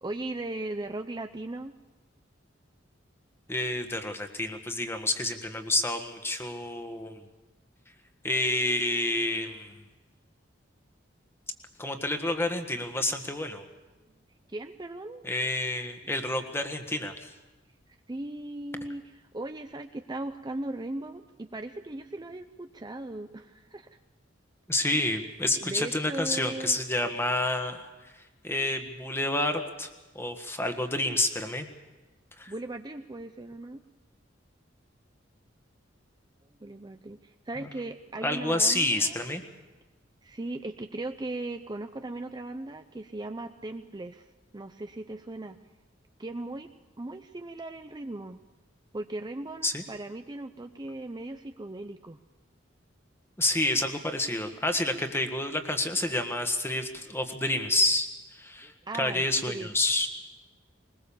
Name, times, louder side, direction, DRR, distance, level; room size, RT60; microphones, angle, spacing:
voice 1, 0.0-1.7 14.5-15.2 18.1-23.9 24.9-25.3 25.6-26.8 32.5-33.8 36.6-39.2 40.2-45.6 46.2-46.7 47.0-48.4 48.9-52.2 58.6-59.7, right 2 dB, 20° right, 7 dB, 0.6 m, -38 dB
voice 2, 3.5-7.2 8.2-9.7 11.8-13.6 15.2-17.3 24.7-27.8 28.4-29.9 30.1-31.7 32.4-32.5 38.2-39.4 49.6-49.8 53.4-58.7 59.0-60.1, left 2 dB, 15° left, 6 dB, 1.6 m, -29 dB
21.0 x 21.0 x 7.1 m, 1.2 s
head